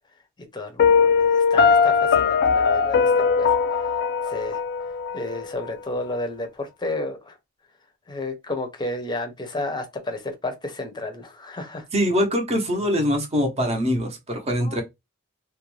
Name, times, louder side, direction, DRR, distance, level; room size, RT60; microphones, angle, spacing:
voice 1, 0.5-3.6 4.3-4.6 5.1-7.4 8.1-11.8 14.6-14.8, left 2 dB, 20° left, 0.6 m, -32 dB
Piano, 0.8-5.7, left 6 dB, 55° left, 0.3 m, -20 dB
voice 2, 11.9-14.8, equal, 30° right, 0.7 m, -23 dB
2.5 x 2.2 x 3.0 m
head